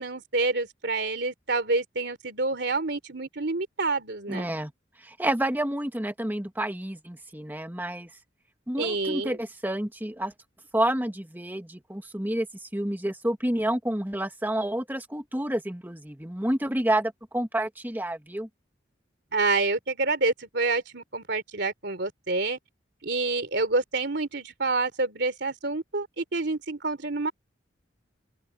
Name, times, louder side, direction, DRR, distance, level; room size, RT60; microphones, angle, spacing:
voice 1, 0.0-4.5 8.8-9.4 19.3-22.6 23.0-27.3, right 3 dB, 60° right, 3.4 m, -28 dB
voice 2, 4.3-4.7 5.0-8.1 8.7-10.3 10.7-18.5, right 1 dB, 10° right, 1.7 m, -29 dB
open air
head